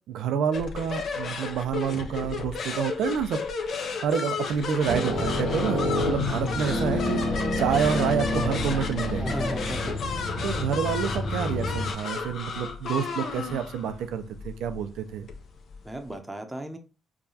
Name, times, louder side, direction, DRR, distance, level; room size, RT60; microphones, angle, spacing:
voice 1, 0.1-3.4 4.0-7.2 7.6-9.4 10.4-15.3, right 7 dB, 85° right, 9 dB, 0.4 m, -28 dB
sound 1, 0.5-16.1, left 5 dB, 60° left, 0.7 m, -34 dB
sound 2, 4.9-11.9, left 2 dB, 85° left, 1.0 m, -28 dB
voice 2, 6.0-6.4 9.2-10.3 15.8-16.8, right 2 dB, 10° right, 5 dB, 0.7 m, -36 dB
4.6 x 2.3 x 2.7 m, 0.32 s
cardioid pair, 90°, 0 cm